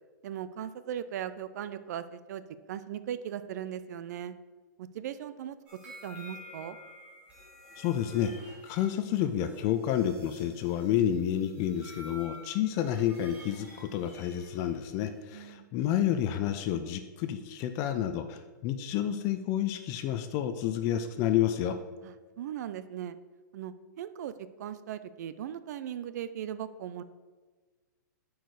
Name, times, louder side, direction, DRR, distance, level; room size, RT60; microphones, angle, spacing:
voice 1, 0.2-4.4 4.8-5.6 5.8-6.8 15.3-15.6 22.0-23.2 23.5-24.3 24.6-27.0, right 10 dB, 55° right, 13 dB, 0.4 m, -38 dB
sound 1, 5.7-15.2, equal, 15° right, 2.3 m, -51 dB
voice 2, 7.8-8.3 8.6-21.8, left 10 dB, 30° left, 9 dB, 0.4 m, -30 dB
7.9 x 4.7 x 4.7 m, 1.3 s
hypercardioid pair, 145°, 11 cm